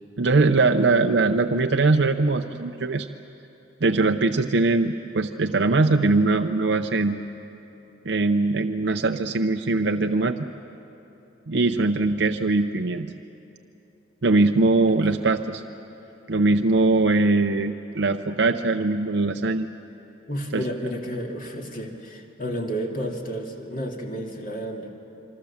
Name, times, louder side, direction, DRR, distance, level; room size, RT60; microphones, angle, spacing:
voice 1, 0.2-3.1 3.8-7.2 8.0-10.4 11.5-13.1 14.2-15.6 16.3-19.7 20.5-20.6, right 3 dB, 70° right, 5 dB, 0.7 m, -21 dB
voice 2, 14.8-15.3 20.3-24.9, equal, 45° left, 1 dB, 2.5 m, -32 dB
27.0 x 25.0 x 7.3 m, 2.9 s
head